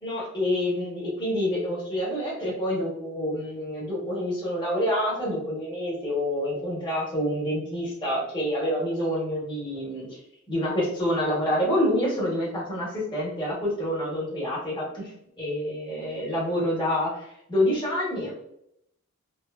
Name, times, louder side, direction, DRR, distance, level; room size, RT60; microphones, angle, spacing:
voice 1, 0.0-10.2 10.5-15.1 15.4-18.3, left 1 dB, 20° left, -6 dB, 1.0 m, -27 dB
2.9 x 2.1 x 2.3 m, 0.76 s
head